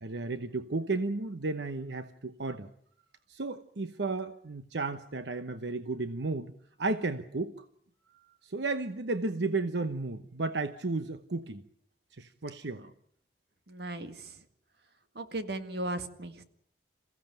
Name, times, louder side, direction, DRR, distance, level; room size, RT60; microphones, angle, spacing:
voice 1, 0.0-2.7 3.3-6.5 6.8-7.5 8.4-11.6 12.2-12.8, right 3 dB, 90° right, 9 dB, 1.0 m, -33 dB
voice 2, 13.7-14.2 15.2-16.4, right 1 dB, 70° right, 8 dB, 1.9 m, -36 dB
27.5 x 16.0 x 9.1 m, 0.69 s
head